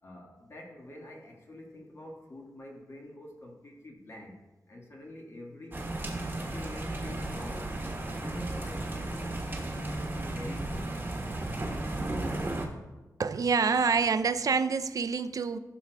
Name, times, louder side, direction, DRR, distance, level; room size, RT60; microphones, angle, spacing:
voice 1, 0.0-4.4 4.7-5.8 6.4-7.7 8.2-11.0, left 1 dB, 40° left, 0 dB, 1.5 m, -46 dB
sound 1, 5.7-12.7, right 2 dB, 30° right, 1.2 m, -34 dB
voice 2, 13.2-15.6, right 5 dB, 60° right, 10 dB, 0.4 m, -27 dB
16.0 x 6.2 x 2.2 m, 1.1 s
wide cardioid pair, 140°, 7 cm